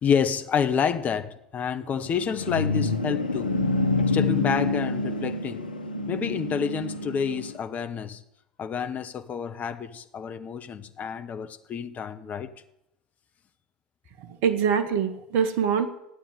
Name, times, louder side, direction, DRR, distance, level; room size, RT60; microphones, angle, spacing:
voice 1, 0.0-3.5 4.1-5.6 6.1-8.2 8.6-12.5, left 7 dB, 35° left, 1.3 m, -29 dB
sound 1, 2.0-7.6, left 3 dB, 90° left, 1.0 m, -27 dB
voice 2, 14.2-15.9, right 7 dB, 55° right, 1.9 m, -24 dB
15.0 x 9.2 x 9.2 m
hypercardioid pair, 80°, 5 cm